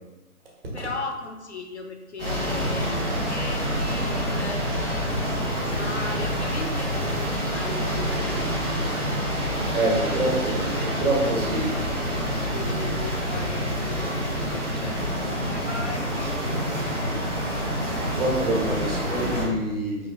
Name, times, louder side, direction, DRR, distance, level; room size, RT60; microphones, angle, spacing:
voice 1, 0.7-17.4 18.5-19.1, left 3 dB, 50° left, 3 dB, 0.5 m, -38 dB
sound 1, 2.2-19.5, equal, 10° right, 1.0 m, -27 dB
voice 2, 9.7-11.7 18.0-20.1, right 1 dB, 40° right, -3 dB, 1.4 m, -26 dB
4.9 x 2.9 x 3.7 m, 1.1 s
figure-of-eight pair, 150°, 45 cm